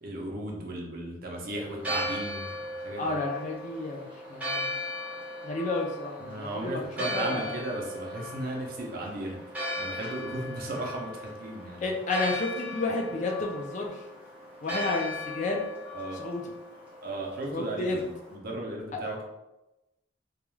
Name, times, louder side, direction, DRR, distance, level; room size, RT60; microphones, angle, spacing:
voice 1, 0.0-3.2 6.2-9.4 9.8-11.9 15.9-16.2 17.0-19.2, right 1 dB, 50° right, -1 dB, 0.5 m, -35 dB
Church bell, 1.7-18.3, left 1 dB, 5° right, 0.6 m, -38 dB
voice 2, 3.0-4.7 5.4-6.8 7.1-7.6 11.8-14.0 14.6-15.7 16.1-16.4 17.5-18.0 18.9-19.0, left 2 dB, 40° left, 0 dB, 0.4 m, -31 dB
2.3 x 2.3 x 3.1 m, 0.98 s
head